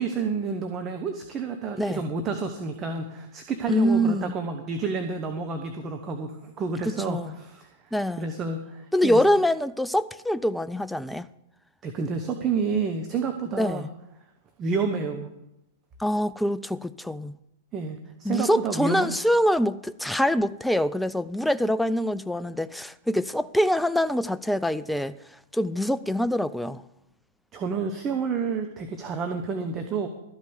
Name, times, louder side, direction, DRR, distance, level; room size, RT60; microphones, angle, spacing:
voice 1, 0.0-7.7 8.2-9.2 11.8-13.9 14.6-15.3 17.7-19.1 27.5-30.1, right 5 dB, 25° right, 1.0 m, -29 dB
voice 2, 3.7-4.3 6.9-7.3 7.9-8.3 8.9-11.3 13.6-13.9 16.0-17.4 18.2-25.1 25.5-26.8, equal, ahead, 0.3 m, -24 dB
13.0 x 5.3 x 8.0 m
figure-of-eight pair, 105°, 0 cm